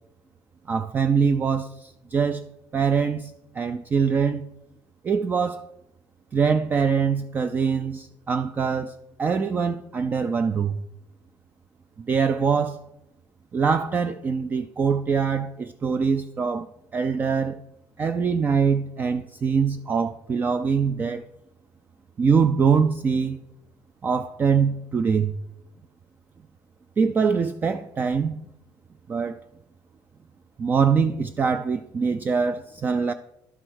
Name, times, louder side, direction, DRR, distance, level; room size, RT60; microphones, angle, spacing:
voice 1, 0.7-2.4 2.7-4.5 5.0-5.6 6.3-10.8 12.0-12.8 13.5-16.7 16.9-17.6 18.0-21.2 22.2-23.4 24.0-25.3 27.0-28.4 29.1-29.3 30.6-33.1, right 6 dB, 25° right, 0.3 m, -23 dB
11.0 x 4.4 x 6.3 m
cardioid pair, 140°, 8 cm